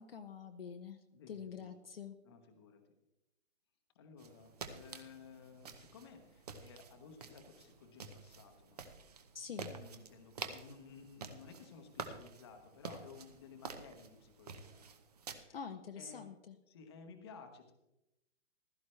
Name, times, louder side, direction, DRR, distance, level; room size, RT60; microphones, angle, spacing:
voice 1, 0.0-1.0 1.3-2.2 9.3-9.7 15.5-16.6, left 6 dB, 50° left, 6 dB, 0.7 m, -46 dB
voice 2, 1.1-1.7 2.2-2.8 3.9-8.9 9.7-14.9 15.5-15.6 16.0-16.2 16.7-17.7, left 5 dB, 20° left, 5 dB, 1.0 m, -56 dB
sound 1, 4.2-15.4, right 5 dB, 30° right, 0.8 m, -49 dB
15.5 x 13.0 x 3.2 m, 0.91 s
hypercardioid pair, 170°, 39 cm